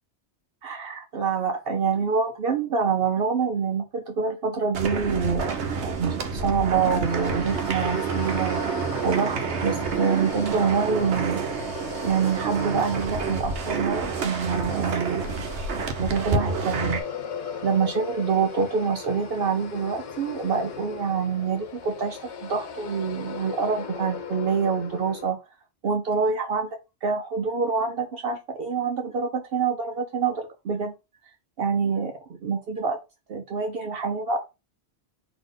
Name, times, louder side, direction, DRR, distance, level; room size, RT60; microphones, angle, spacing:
voice 1, 0.6-11.4 12.0-15.5 16.0-17.0 17.6-25.4 25.8-26.7 27.0-30.9 31.6-33.0 33.3-34.4, right 5 dB, 60° right, 0.8 m, -26 dB
sound 1, 4.7-17.0, right 5 dB, 85° right, 1.1 m, -28 dB
sound 2, 7.0-25.3, left 6 dB, 80° left, 1.1 m, -38 dB
4.0 x 2.9 x 3.6 m
omnidirectional pair, 1.1 m